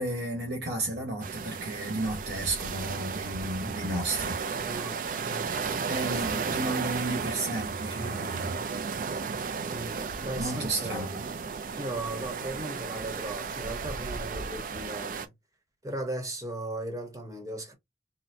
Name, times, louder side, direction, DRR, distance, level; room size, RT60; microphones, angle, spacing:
voice 1, 0.0-4.4 5.9-8.6 10.3-11.2, right 2 dB, 75° right, 1.3 m, -33 dB
sound 1, 1.2-15.3, right 5 dB, 50° right, 0.4 m, -34 dB
voice 2, 4.6-5.8 6.1-6.7 7.9-8.5 9.7-11.1 11.8-15.3 15.8-17.7, right 1 dB, 20° right, 1.0 m, -38 dB
4.0 x 2.1 x 2.7 m
head